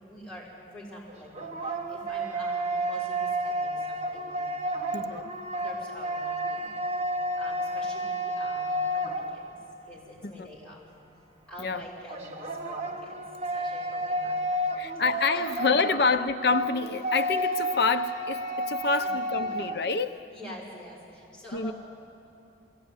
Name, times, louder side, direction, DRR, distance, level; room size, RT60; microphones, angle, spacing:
voice 1, 0.0-4.9 5.5-6.8 7.1-10.8 11.5-14.9 15.3-16.0 19.0-19.1 19.4-19.6 20.3-21.7, left 1 dB, 5° left, -7 dB, 6.3 m, -46 dB
sound 1, 1.1-9.8 12.1-19.8, right 1 dB, 35° right, 1.4 m, -31 dB
voice 2, 4.9-5.3 10.2-10.5 11.6-11.8 14.8-20.3 21.5-21.7, left 4 dB, 60° left, 8 dB, 0.7 m, -27 dB
21.5 x 17.0 x 9.6 m, 2.7 s
head